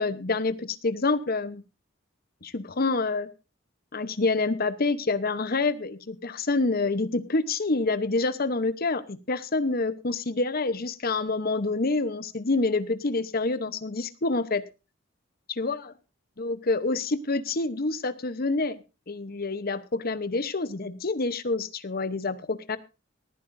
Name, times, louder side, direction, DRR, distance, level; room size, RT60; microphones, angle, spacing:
voice 1, 0.0-1.6 2.4-3.3 3.9-14.6 15.6-15.8 16.4-18.8 19.1-22.8, left 3 dB, 50° left, 13 dB, 0.9 m, -27 dB
19.0 x 13.5 x 2.6 m, 0.29 s
head